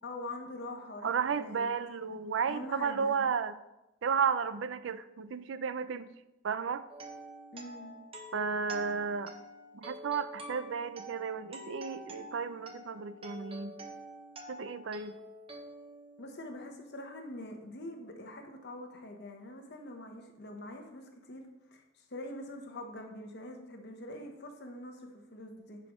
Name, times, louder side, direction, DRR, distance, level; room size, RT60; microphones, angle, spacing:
voice 1, 0.0-1.7 2.1-2.2 2.5-3.2 7.5-7.9 16.2-21.4 21.7-25.9, left 1 dB, 60° left, 3 dB, 1.1 m, -44 dB
voice 2, 1.0-3.6 4.0-6.1 6.4-6.9 8.3-9.4 9.7-13.7 14.5-15.2, right 6 dB, 75° right, 13 dB, 0.4 m, -33 dB
sound 1, 6.9-16.8, equal, 30° right, 0.8 m, -48 dB
10.0 x 4.9 x 3.1 m, 0.94 s
head